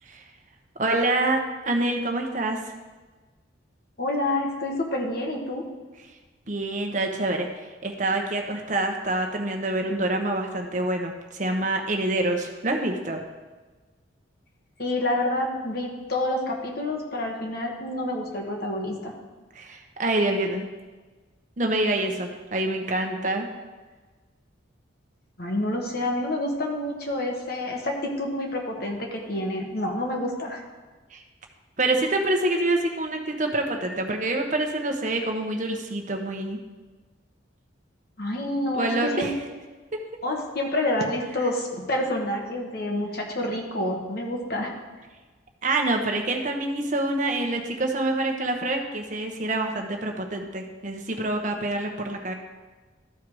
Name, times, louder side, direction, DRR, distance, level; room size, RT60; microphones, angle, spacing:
voice 1, 0.8-1.4 1.6-2.6 6.5-13.2 19.5-20.7 21.6-23.5 31.1-31.2 31.8-36.6 38.7-39.3 41.4-41.5 45.6-52.3, right 2 dB, 40° right, 3 dB, 1.0 m, -26 dB
voice 2, 4.0-5.7 14.8-19.1 25.4-30.6 38.2-39.3 40.2-44.7, left 1 dB, 55° left, 1 dB, 1.4 m, -28 dB
13.0 x 4.6 x 4.8 m, 1.3 s
head